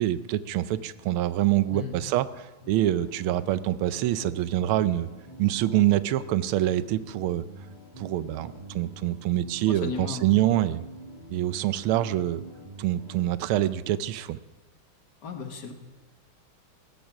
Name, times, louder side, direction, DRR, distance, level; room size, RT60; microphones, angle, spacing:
voice 1, 0.0-5.1 5.4-7.5 8.0-10.8 11.3-12.4 12.8-14.4, right 13 dB, 85° right, 15 dB, 1.5 m, -25 dB
voice 2, 1.7-2.0 9.7-10.4 15.2-15.7, left 5 dB, 55° left, 5 dB, 2.0 m, -35 dB
sound 1, 2.6-13.2, right 1 dB, 20° right, 4.5 m, -45 dB
15.5 x 14.0 x 6.0 m, 1.2 s
omnidirectional pair, 2.3 m